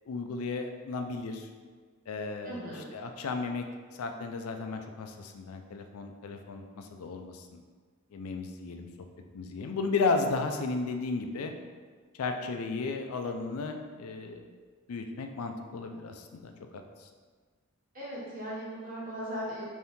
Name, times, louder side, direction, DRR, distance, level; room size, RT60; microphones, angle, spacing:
voice 1, 0.1-1.5 2.1-3.6 4.0-7.6 8.1-8.9 9.3-11.5 12.2-14.4 14.9-17.1, left 4 dB, 85° left, 5 dB, 0.4 m, -34 dB
voice 2, 2.4-2.9 17.9-19.6, equal, 40° right, -8 dB, 1.2 m, -38 dB
4.2 x 2.7 x 3.5 m, 1.5 s
head